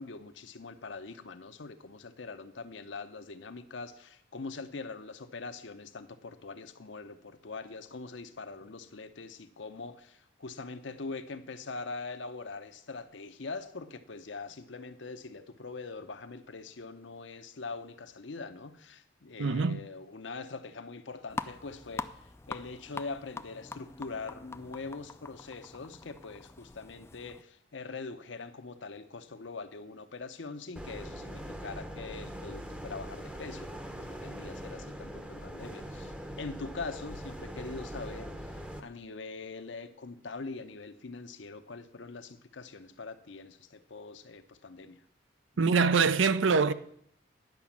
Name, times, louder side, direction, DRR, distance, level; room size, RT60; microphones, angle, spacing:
voice 1, 0.0-45.0, left 4 dB, 70° left, 0.7 m, -43 dB
voice 2, 19.4-19.8 45.6-46.7, right 5 dB, 80° right, 0.5 m, -24 dB
sound 1, 21.3-27.4, left 3 dB, 15° left, 0.3 m, -43 dB
sound 2, 30.8-38.8, equal, 5° right, 0.7 m, -42 dB
10.5 x 5.1 x 7.2 m
head